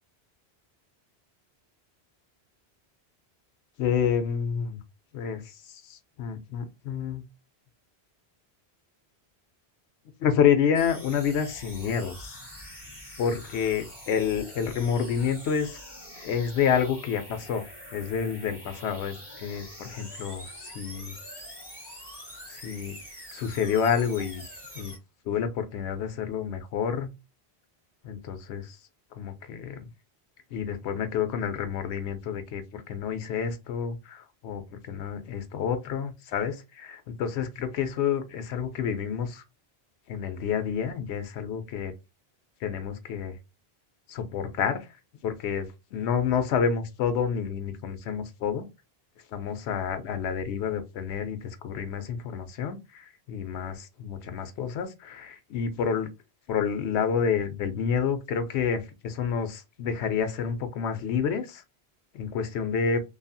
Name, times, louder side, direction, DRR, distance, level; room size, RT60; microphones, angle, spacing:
voice 1, 3.8-4.8 5.1-7.2 10.2-12.4 13.2-15.8 16.2-17.6 17.9-21.1 22.5-23.0 23.3-24.4 24.7-24.9 25.3-27.1 28.0-28.8 29.2-29.9 30.5-39.4 40.1-41.9 42.6-43.4 44.1-44.9 45.2-48.7 49.3-56.1 56.5-61.6 62.1-63.0, left 7 dB, 90° left, 0.8 m, -29 dB
sound 1, 10.7-25.0, equal, 15° right, 1.5 m, -44 dB
2.6 x 2.4 x 2.5 m
omnidirectional pair, 1.1 m